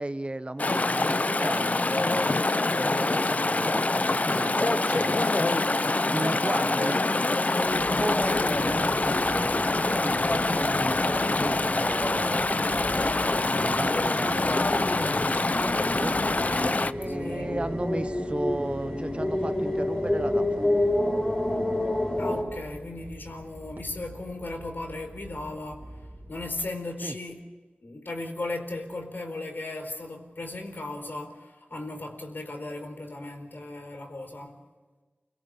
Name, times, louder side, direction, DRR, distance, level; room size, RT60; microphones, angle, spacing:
voice 1, 0.0-2.4 2.7-5.2 6.1-7.0 7.9-12.8 13.6-16.2 16.9-20.7 27.0-27.2, right 1 dB, 35° right, 12 dB, 0.9 m, -35 dB
Chatter / Stream, 0.6-16.9, left 2 dB, 45° left, 0.7 m, -25 dB
sound 1, 7.6-26.5, right 1 dB, 65° right, 2.6 m, -45 dB
sound 2, 8.4-22.4, left 1 dB, 30° left, 5.3 m, -31 dB
voice 2, 17.1-17.5 22.2-25.9 26.3-27.4 27.8-34.6, left 2 dB, 70° left, 4 dB, 4.4 m, -36 dB
29.5 x 18.0 x 7.1 m, 1.3 s
wide cardioid pair, 65°, 4 cm